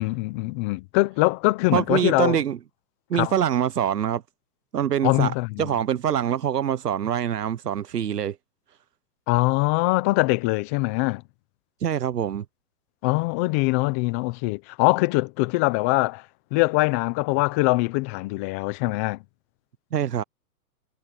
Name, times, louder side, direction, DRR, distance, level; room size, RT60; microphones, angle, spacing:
voice 1, 0.0-2.4 3.1-3.3 5.0-5.7 9.3-11.2 13.0-16.2 16.5-19.2, left 24 dB, 10° left, 0.3 m, -23 dB
voice 2, 1.7-2.6 3.1-4.2 4.7-5.3 5.6-8.4 11.8-12.4 19.9-20.2, right 9 dB, 85° right, 1.0 m, -24 dB
hypercardioid pair, 120°, 47 cm